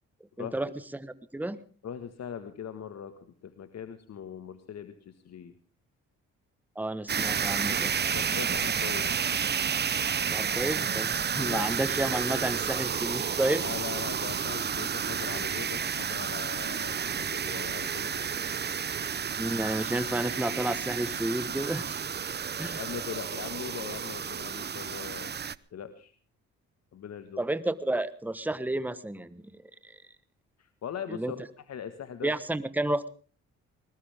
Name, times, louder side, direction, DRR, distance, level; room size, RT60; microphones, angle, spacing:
voice 1, 0.4-1.6 6.7-8.0 10.3-13.6 19.4-22.0 22.6-22.8 27.4-29.4 29.8-30.0 31.1-31.3 32.2-33.1, right 1 dB, 5° right, 14 dB, 1.3 m, -31 dB
voice 2, 1.8-5.5 8.1-9.1 11.4-11.7 13.6-18.3 22.8-25.4 25.7-26.1 26.9-27.4 30.6-32.3, left 8 dB, 60° left, 10 dB, 1.7 m, -40 dB
sound 1, 7.1-25.6, right 7 dB, 35° right, 0.7 m, -31 dB
20.5 x 19.5 x 3.6 m, 0.40 s
cardioid pair, 75°, 30 cm